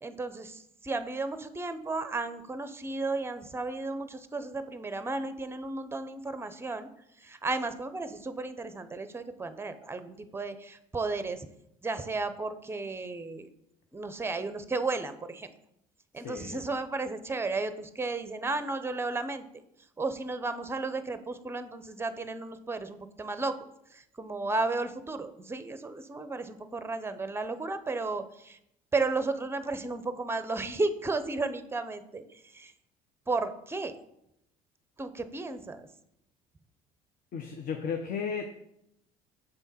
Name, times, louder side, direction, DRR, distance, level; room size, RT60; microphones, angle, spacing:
voice 1, 0.0-6.9 7.2-11.5 11.8-13.5 13.9-15.5 16.1-19.4 20.0-23.5 23.9-28.6 28.9-32.2 32.5-32.7 33.3-33.9 35.0-35.9, right 3 dB, 15° right, 11 dB, 0.6 m, -33 dB
voice 2, 16.1-16.6 37.3-38.6, left 6 dB, 50° left, 5 dB, 0.6 m, -35 dB
6.7 x 3.5 x 4.1 m, 0.78 s
hypercardioid pair, 65°, 18 cm